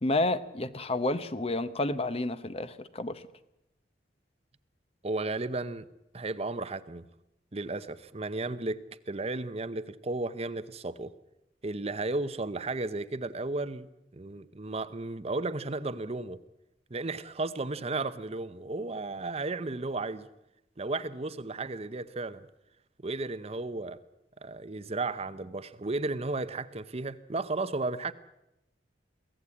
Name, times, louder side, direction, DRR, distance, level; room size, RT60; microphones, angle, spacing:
voice 1, 0.0-3.2, left 2 dB, 35° left, 0.9 m, -30 dB
voice 2, 5.0-5.9 6.1-7.1 7.5-8.8 9.1-11.1 11.6-13.9 14.1-16.4 16.9-20.3 20.8-22.5 23.0-24.0 24.4-28.1, right 2 dB, 35° right, 0.8 m, -34 dB
23.0 x 16.5 x 8.6 m
head